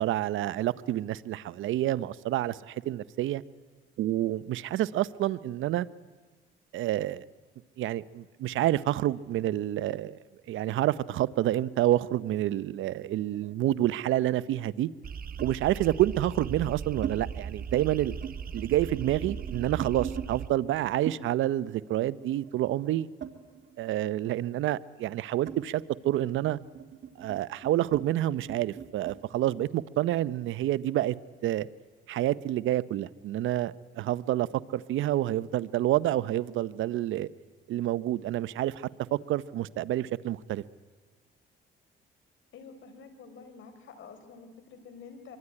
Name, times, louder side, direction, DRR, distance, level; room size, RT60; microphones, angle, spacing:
voice 1, 0.0-3.4 4.0-5.9 6.7-7.3 7.8-10.2 10.5-14.9 15.4-18.1 18.5-23.1 23.8-26.6 27.2-31.2 31.4-31.7 32.1-37.3 37.7-40.6, right 13 dB, 80° right, 0.7 m, -28 dB
sound 1, 12.7-14.1 15.4-15.6 16.4-17.2 17.5-17.9 18.1-20.3 21.1-23.9 24.2-29.2, right 8 dB, 65° right, 2.1 m, -42 dB
sound 2, 15.0-20.5, right 6 dB, 45° right, 1.0 m, -38 dB
voice 2, 42.5-45.4, left 5 dB, 75° left, 4.4 m, -48 dB
25.0 x 23.0 x 9.8 m
cardioid pair, 90°, 20 cm